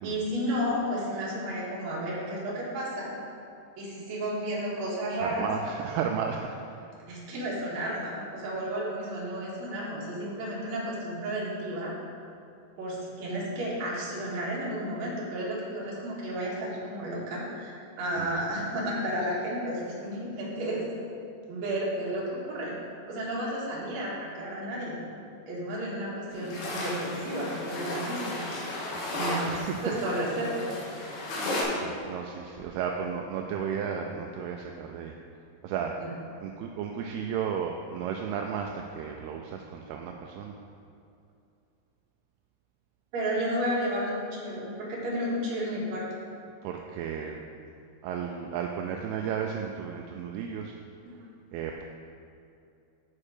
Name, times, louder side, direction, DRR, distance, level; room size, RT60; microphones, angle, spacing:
voice 1, 0.0-3.1 3.8-5.5 7.1-11.9 12.8-20.8 21.5-22.7 23.1-25.0 25.5-28.4 29.1-30.7 36.0-36.1 43.1-46.0, equal, 50° right, -6 dB, 2.6 m, -32 dB
voice 2, 5.2-6.9 18.2-18.4 29.5-30.0 31.8-35.1 35.6-36.0 36.4-40.6 46.6-47.4 48.0-50.7 51.5-51.8, right 7 dB, 85° right, 2 dB, 2.3 m, -33 dB
sound 1, 26.3-31.6, left 1 dB, 75° left, 3.4 m, -34 dB
8.5 x 6.4 x 4.9 m, 2.5 s
omnidirectional pair, 4.8 m